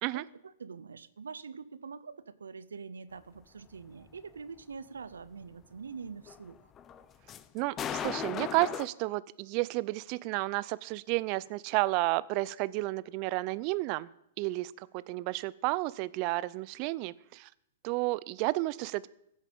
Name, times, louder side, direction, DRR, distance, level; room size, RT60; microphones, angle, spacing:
voice 1, 0.1-6.6, right 5 dB, 80° right, 17 dB, 0.7 m, -45 dB
sound 1, 6.3-8.9, left 9 dB, 25° left, 0.7 m, -36 dB
voice 2, 7.5-14.1 14.4-17.5 17.8-19.1, right 20 dB, 45° right, 20 dB, 0.5 m, -31 dB
15.5 x 8.2 x 5.4 m, 0.78 s
hypercardioid pair, 115°, 0 cm